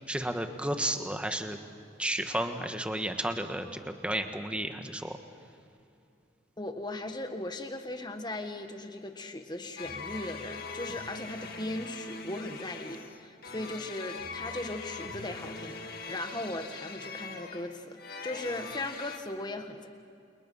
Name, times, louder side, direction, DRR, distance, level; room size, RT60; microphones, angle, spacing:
voice 1, 0.1-1.6 2.0-5.2, right 1 dB, 5° right, 6 dB, 1.5 m, -32 dB
voice 2, 6.6-18.0 18.2-19.9, left 1 dB, 25° left, 6 dB, 1.7 m, -38 dB
sound 1, 9.8-19.2, left 4 dB, 55° left, 2.1 m, -42 dB
29.5 x 28.5 x 5.7 m, 2.6 s
head